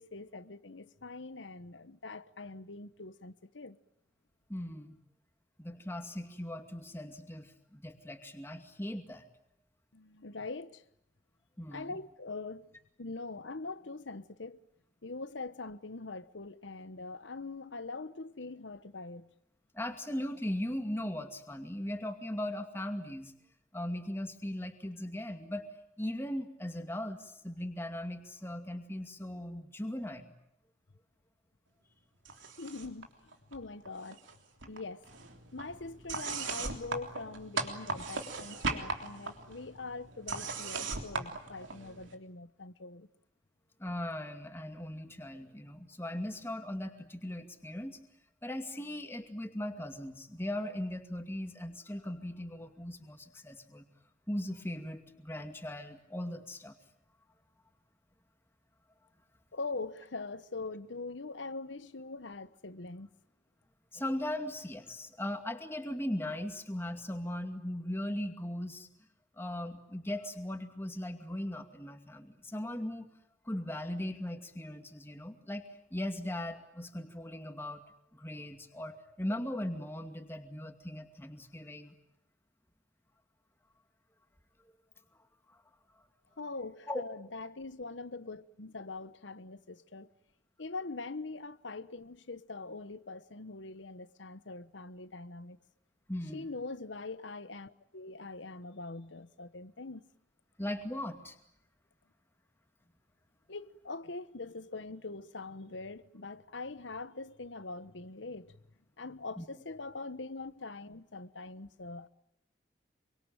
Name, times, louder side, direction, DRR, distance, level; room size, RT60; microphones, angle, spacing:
voice 1, 0.0-3.8 9.9-10.8 11.7-12.7 13.0-14.6 15.0-19.3 32.6-33.1 33.5-34.2 34.7-35.0 35.5-43.1 59.5-63.1 86.4-90.1 90.6-95.6 96.3-100.1 103.5-108.6 109.0-112.1, left 3 dB, 80° left, 1.1 m, -43 dB
voice 2, 4.5-5.0 5.6-9.3 11.6-11.9 19.7-23.3 23.7-25.7 26.0-30.3 43.8-48.0 48.4-53.8 54.3-56.7 63.9-68.9 69.4-73.1 73.4-77.8 78.1-81.9 85.5-85.6 86.9-87.0 96.1-96.5 100.6-101.4 109.4-109.5, left 1 dB, 10° left, 2.4 m, -38 dB
sound 1, 32.2-33.0 33.3-34.3 34.6-42.1, right 3 dB, 90° right, 3.4 m, -39 dB
27.0 x 24.0 x 9.0 m
head